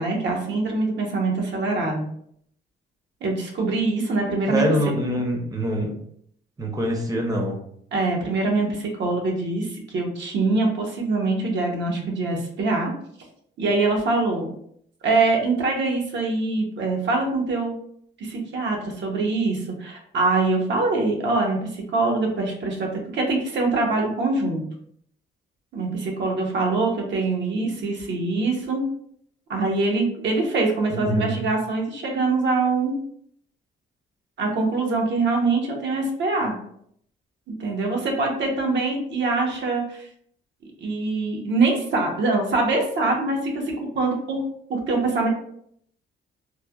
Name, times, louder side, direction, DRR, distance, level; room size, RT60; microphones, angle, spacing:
voice 1, 0.0-2.0 3.2-4.7 7.9-12.9 13.6-14.5 15.0-17.8 18.2-24.6 25.7-28.8 29.5-32.9 34.4-36.6 37.5-40.1 40.8-44.4 44.7-45.3, right 3 dB, 65° right, 1 dB, 0.8 m, -24 dB
voice 2, 4.5-5.9 6.6-7.6 30.9-31.4, equal, 20° right, 1 dB, 0.6 m, -24 dB
3.1 x 2.1 x 2.3 m, 0.66 s
cardioid pair, 90°, 20 cm